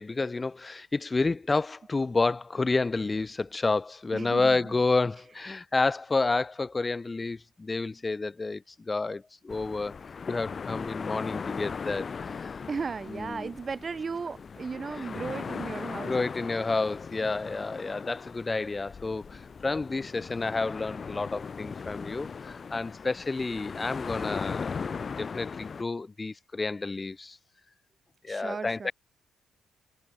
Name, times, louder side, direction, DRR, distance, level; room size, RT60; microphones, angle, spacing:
voice 1, 0.0-9.9 10.3-12.6 13.1-13.5 16.0-24.9 25.2-27.4 28.2-28.9, left 3 dB, 30° left, 6.4 m, -30 dB
voice 2, 4.1-4.7 12.7-16.5 28.3-28.9, right 5 dB, 40° right, 2.5 m, -36 dB
sound 1, 9.5-25.8, left 5 dB, 45° left, 1.5 m, -38 dB
supercardioid pair, 60°, 0 cm